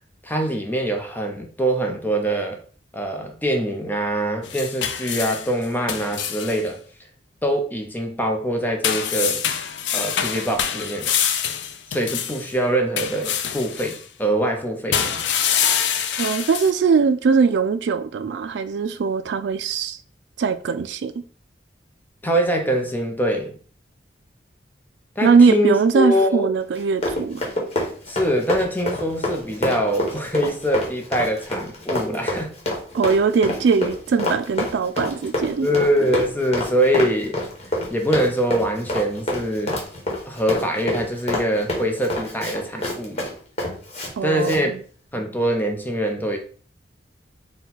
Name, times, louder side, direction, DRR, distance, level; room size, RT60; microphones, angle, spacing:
voice 1, 0.2-2.6 2.9-6.8 7.4-9.4 9.9-11.2 11.9-15.2 22.2-23.6 25.2-26.5 28.1-32.6 35.6-37.4 37.9-39.8 40.2-43.2 44.2-44.8 45.1-46.4, equal, 10° left, 0.6 m, -23 dB
sound 1, 4.4-6.6 8.8-12.5 13.0-14.0 14.9-16.7, left 8 dB, 80° left, 0.4 m, -25 dB
voice 2, 16.2-20.0 20.4-21.1 25.2-27.5 32.9-35.7 44.2-44.8, right 5 dB, 75° right, 0.3 m, -20 dB
Run, 26.7-44.1 44.4-44.6, left 1 dB, 35° left, 1.1 m, -27 dB
4.3 x 2.3 x 3.9 m
head